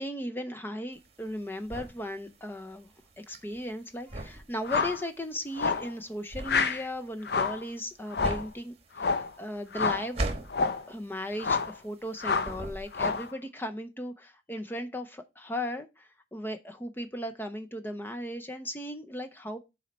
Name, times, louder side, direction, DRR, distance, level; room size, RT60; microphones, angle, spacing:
voice 1, 0.0-10.2 10.9-19.6, left 1 dB, 10° left, 0.5 m, -37 dB
sound 1, 0.9-12.1 12.4-13.3, right 1 dB, 35° right, 1.3 m, -39 dB
sound 2, 4.6-5.0 5.6-5.9 6.4-6.8 7.3-7.6 8.1-8.5 9.0-9.3 9.7-10.1 10.5-10.8 11.4-11.8 12.2-12.6 12.9-13.3, left 5 dB, 60° left, 0.6 m, -28 dB
7.2 x 4.2 x 5.2 m
head